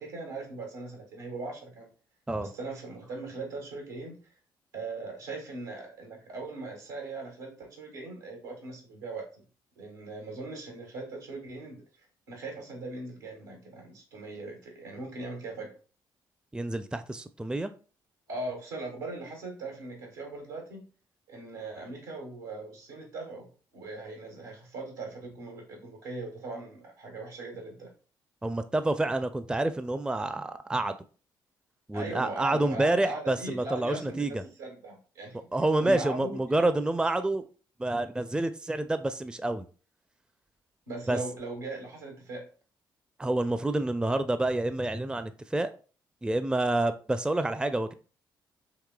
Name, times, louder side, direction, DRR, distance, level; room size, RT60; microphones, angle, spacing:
voice 1, 0.0-1.9 2.4-4.3 4.7-9.4 9.8-11.8 12.3-15.7 18.3-20.8 21.3-27.9 31.9-35.4 35.8-36.6 40.9-42.5, right 2 dB, 85° right, 0 dB, 1.4 m, -39 dB
voice 2, 16.5-17.7 28.4-31.0 31.9-34.4 35.5-37.5 37.8-39.7 41.1-41.2 43.2-45.7 46.2-47.9, right 2 dB, 10° right, 11 dB, 0.4 m, -28 dB
4.8 x 3.2 x 2.2 m, 0.38 s
hypercardioid pair, 45°, 11 cm